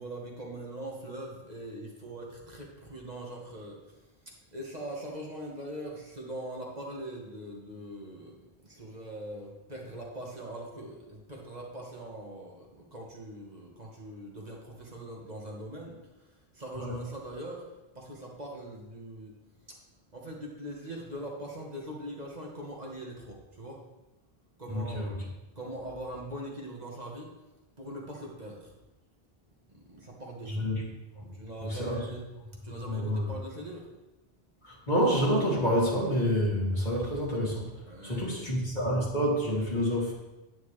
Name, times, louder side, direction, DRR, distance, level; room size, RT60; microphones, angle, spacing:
voice 1, 0.0-8.4 8.6-17.6 17.9-19.3 19.7-19.8 20.1-23.8 24.6-25.1 25.5-27.3 27.8-28.7 29.7-30.6 31.3-32.2 32.6-33.9 37.9-38.4, right 1 dB, 45° right, -2 dB, 1.6 m, -42 dB
voice 2, 24.7-25.1 30.4-30.8 31.1-31.3 31.7-32.0 32.8-33.3 34.6-37.7 38.0-40.1, equal, 45° left, -5 dB, 2.8 m, -28 dB
9.6 x 9.2 x 3.3 m, 1.0 s
omnidirectional pair, 1.0 m